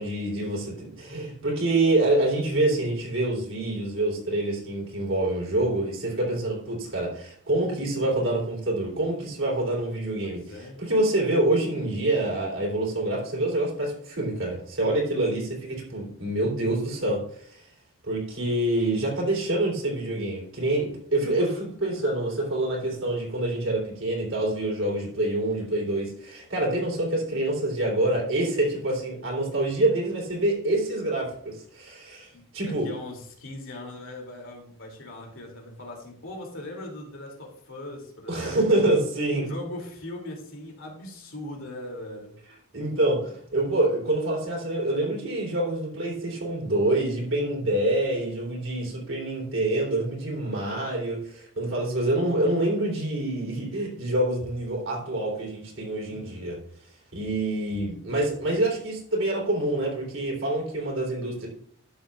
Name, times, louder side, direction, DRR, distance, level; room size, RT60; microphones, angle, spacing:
voice 1, 0.0-17.7 18.0-32.8 38.3-39.5 42.7-56.6 57.1-61.5, right 1 dB, 60° right, -3 dB, 3.2 m, -26 dB
voice 2, 10.2-10.8 32.3-39.0 39.4-42.3 56.1-56.5, left 1 dB, 70° left, 1 dB, 2.5 m, -40 dB
12.0 x 7.2 x 2.4 m, 0.63 s
head